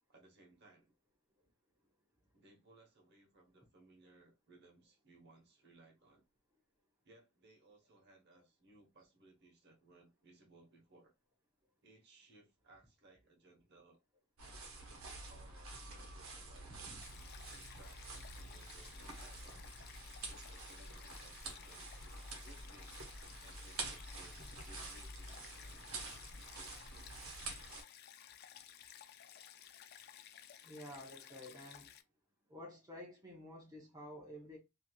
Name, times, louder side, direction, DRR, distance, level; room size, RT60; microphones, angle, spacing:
voice 1, 0.1-0.9 2.3-6.2 7.0-11.1 11.8-14.0 15.3-19.4 20.2-22.0 22.4-23.1 23.4-26.0, right 2 dB, 50° right, 1.0 m, -64 dB
sound 1, 14.4-27.8, right 3 dB, 70° right, 1.0 m, -48 dB
Stream, 17.0-32.0, left 10 dB, 45° left, 0.3 m, -56 dB
voice 2, 30.6-31.9 32.5-34.6, left 1 dB, 15° right, 0.7 m, -51 dB
3.1 x 2.7 x 2.2 m
head